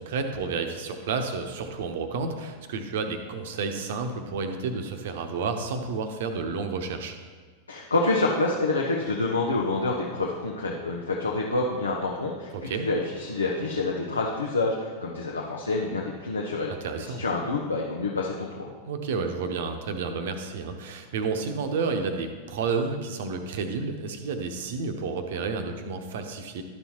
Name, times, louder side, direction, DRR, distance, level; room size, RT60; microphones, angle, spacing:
voice 1, 0.0-7.1 12.5-12.9 16.8-17.2 18.8-26.6, right 4 dB, 55° right, 6 dB, 0.9 m, -31 dB
voice 2, 7.7-16.7 17.0-18.7, left 3 dB, 75° left, -2 dB, 0.8 m, -27 dB
12.5 x 5.5 x 3.0 m, 1.5 s
figure-of-eight pair, 90°, 0 cm